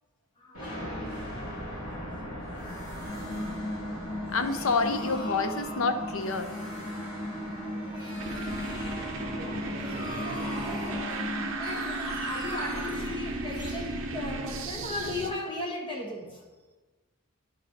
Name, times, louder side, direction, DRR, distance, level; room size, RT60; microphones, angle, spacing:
voice 1, 0.4-0.8 2.0-2.4 3.4-3.5 6.9-11.3 11.6-16.5, left 1 dB, 20° left, -1 dB, 1.2 m, -39 dB
sound 1, 0.5-15.2, equal, 90° left, 2.4 m, -40 dB
sound 2, 3.0-11.5, equal, 10° right, 0.9 m, -37 dB
voice 2, 4.3-6.5, left 4 dB, 65° left, 8 dB, 0.6 m, -28 dB
sound 3, 7.2-15.3, right 2 dB, 60° right, 0.7 m, -35 dB
11.0 x 4.2 x 4.0 m, 1.3 s
head